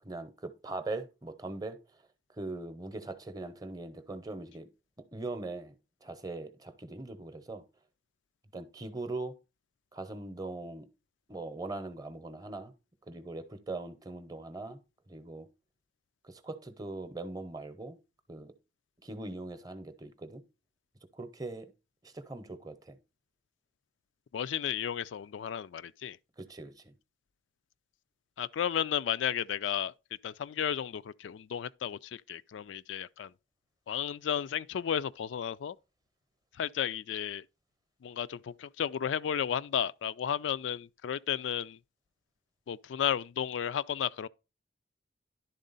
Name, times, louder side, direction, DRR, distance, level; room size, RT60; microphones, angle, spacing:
voice 1, 0.0-2.0 2.3-4.7 5.1-5.7 6.0-7.6 8.5-9.3 9.9-10.9 11.3-12.7 13.0-14.8 15.1-15.5 16.2-18.0 18.3-18.5 19.0-20.4 21.1-21.7 22.0-23.0 26.4-26.9, right 2 dB, 20° right, 0.7 m, -41 dB
voice 2, 24.3-26.2 28.4-29.9 30.2-33.3 33.9-35.8 36.6-37.4 38.0-41.8 42.7-44.3, left 9 dB, 85° left, 0.3 m, -33 dB
11.0 x 3.7 x 3.9 m
head